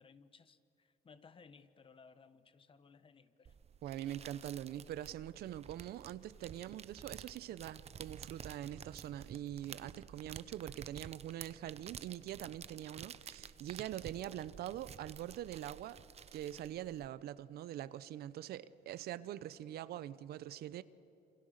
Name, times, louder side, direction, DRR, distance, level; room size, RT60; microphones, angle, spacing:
voice 1, 0.0-3.6, left 5 dB, 30° left, 1.3 m, -61 dB
sound 1, 3.4-17.1, right 7 dB, 40° right, 0.9 m, -52 dB
voice 2, 3.8-16.0 16.3-20.8, right 12 dB, 70° right, 0.8 m, -44 dB
27.5 x 27.5 x 6.7 m
cardioid pair, 110°, 17 cm